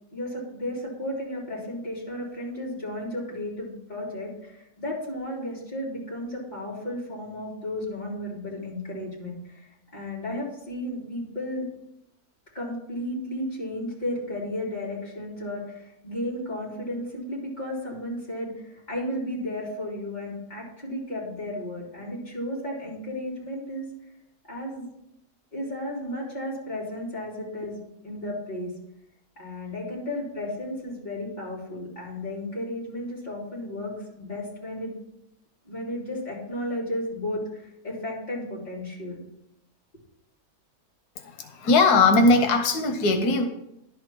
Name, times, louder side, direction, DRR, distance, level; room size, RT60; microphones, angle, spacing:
voice 1, 0.1-11.7 12.5-23.8 24.5-24.9 25.5-28.7 29.4-34.9 35.6-39.2, left 1 dB, 25° left, -6 dB, 3.4 m, -33 dB
voice 2, 41.2-43.5, left 3 dB, 90° left, 6 dB, 1.4 m, -20 dB
11.0 x 5.0 x 6.1 m, 0.82 s
omnidirectional pair, 1.6 m